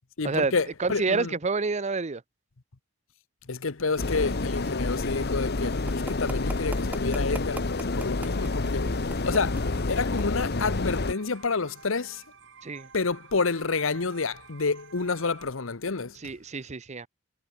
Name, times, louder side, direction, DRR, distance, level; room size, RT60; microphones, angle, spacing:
voice 1, 0.2-1.3 3.5-8.9 9.2-12.2 12.9-16.2, left 4 dB, 80° left, 1.1 m, -29 dB
voice 2, 0.8-2.2 12.6-12.9 16.2-17.1, right 4 dB, 35° right, 0.7 m, -28 dB
sound 1, 3.9-15.5, right 5 dB, 65° right, 7.6 m, -52 dB
sound 2, 4.0-11.1, left 3 dB, 55° left, 1.0 m, -28 dB
sound 3, 5.6-10.7, right 1 dB, 10° right, 5.9 m, -40 dB
head